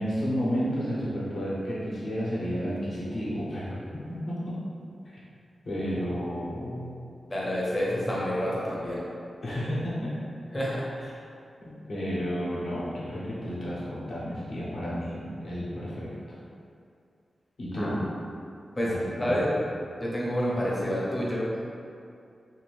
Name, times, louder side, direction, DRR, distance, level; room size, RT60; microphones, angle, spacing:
voice 1, 0.0-4.6 5.0-5.2 5.6-6.9 9.4-10.2 11.6-16.1 17.6-18.0 18.8-19.4, equal, 60° left, -7 dB, 0.8 m, -32 dB
voice 2, 7.3-9.0 10.5-11.1 17.8-18.0 18.8-18.9 19.2-19.5 20.0-21.5, equal, 25° left, -6 dB, 0.6 m, -28 dB
2.7 x 2.5 x 3.2 m, 2.4 s
wide cardioid pair, 135°, 0 cm